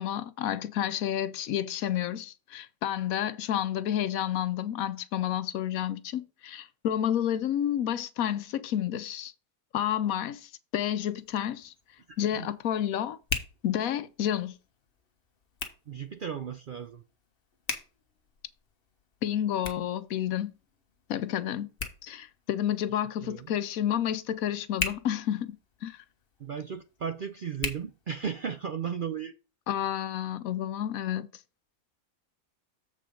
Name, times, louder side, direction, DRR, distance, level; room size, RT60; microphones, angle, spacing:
voice 1, 0.0-9.3 9.7-11.7 12.2-13.2 13.6-14.5 19.2-20.5 21.1-21.7 22.0-25.5 25.8-26.0 29.7-31.3, left 10 dB, 75° left, 1.1 m, -30 dB
Hands, 11.0-28.7, left 4 dB, 40° left, 1.4 m, -42 dB
voice 2, 15.9-17.0 23.2-23.5 26.4-29.3, right 7 dB, 65° right, 0.5 m, -35 dB
7.6 x 5.0 x 5.1 m
omnidirectional pair, 1.5 m